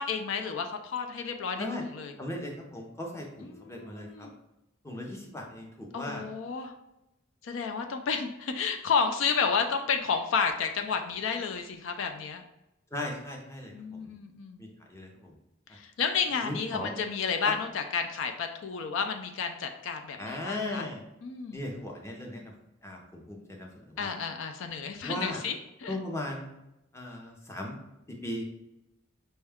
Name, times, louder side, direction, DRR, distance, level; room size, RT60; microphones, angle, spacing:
voice 1, 0.0-1.7 1.9-2.1 3.4-4.3 5.9-6.7 7.4-12.4 13.7-14.6 15.7-20.8 21.2-21.6 24.0-26.0, left 5 dB, 70° left, 6 dB, 0.4 m, -31 dB
voice 2, 2.2-4.3 4.8-6.2 12.9-13.7 14.0-14.1 14.6-15.3 16.4-16.9 17.4-17.5 20.2-21.0 21.5-22.5 22.8-24.2 25.0-25.4 25.9-26.5 26.9-27.8 28.1-28.4, left 1 dB, 15° left, 0 dB, 0.6 m, -37 dB
5.3 x 2.3 x 3.4 m, 0.88 s
head